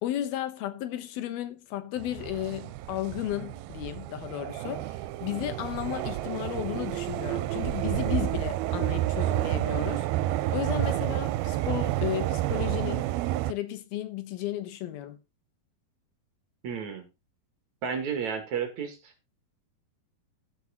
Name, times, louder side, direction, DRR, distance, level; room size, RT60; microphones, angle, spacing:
voice 1, 0.0-10.1 10.5-13.1 13.5-15.2, left 12 dB, 85° left, 3.1 m, -34 dB
sound 1, 2.0-13.5, right 15 dB, 90° right, 2.6 m, -30 dB
voice 2, 16.6-17.1 17.8-19.1, right 7 dB, 55° right, 3.1 m, -32 dB
15.5 x 5.9 x 4.1 m
omnidirectional pair, 4.3 m